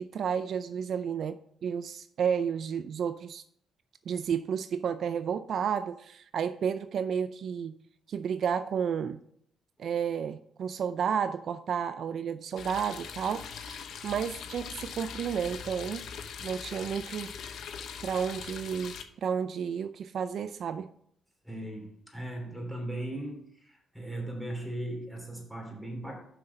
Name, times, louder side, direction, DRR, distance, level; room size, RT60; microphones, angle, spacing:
voice 1, 0.0-1.3 1.6-3.4 4.1-7.7 8.1-9.2 9.8-13.8 14.0-16.0 16.4-17.3 18.0-20.9, right 7 dB, 60° right, 11 dB, 0.4 m, -31 dB
sound 1, 12.6-19.0, left 7 dB, 70° left, 0.9 m, -41 dB
voice 2, 21.4-26.2, right 1 dB, ahead, 0 dB, 3.1 m, -38 dB
6.5 x 5.8 x 5.4 m, 0.67 s
cardioid pair, 90°, 0 cm